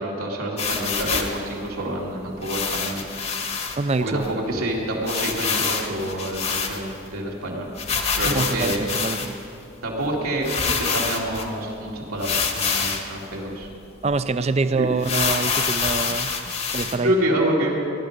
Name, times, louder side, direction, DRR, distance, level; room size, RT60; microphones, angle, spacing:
voice 1, 0.0-3.0 4.0-7.7 8.1-8.8 9.8-13.7 14.7-14.9 17.0-17.8, right 1 dB, 85° right, -2 dB, 2.7 m, -27 dB
sound 1, 0.6-1.4 2.4-3.8 4.2-4.3 4.5-4.6 5.1-7.1 7.8-9.5 10.1-10.2 10.4-11.5 12.2-13.1 13.6-13.7 14.1-14.2 15.0-17.0, left 5 dB, 30° left, 1.0 m, -26 dB
voice 2, 3.7-4.3 8.2-9.4 14.0-16.3 16.7-17.1, right 3 dB, 30° right, 12 dB, 0.4 m, -25 dB
19.0 x 11.0 x 5.2 m, 2.7 s
head